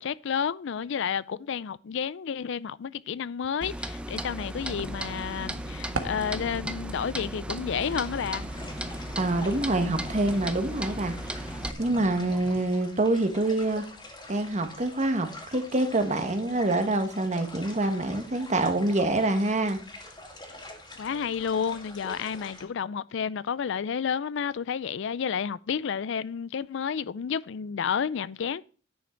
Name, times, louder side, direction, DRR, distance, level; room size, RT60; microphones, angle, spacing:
voice 1, 0.0-8.4 21.0-28.6, left 7 dB, 65° left, 0.4 m, -31 dB
Clock, 3.6-11.7, right 1 dB, 5° right, 0.6 m, -36 dB
sound 1, 4.6-12.6, right 2 dB, 85° right, 1.4 m, -42 dB
sound 2, 7.8-22.7, left 1 dB, 20° left, 2.2 m, -46 dB
voice 2, 9.2-13.9 14.3-19.8, right 2 dB, 35° right, 1.5 m, -26 dB
10.0 x 6.4 x 4.4 m
head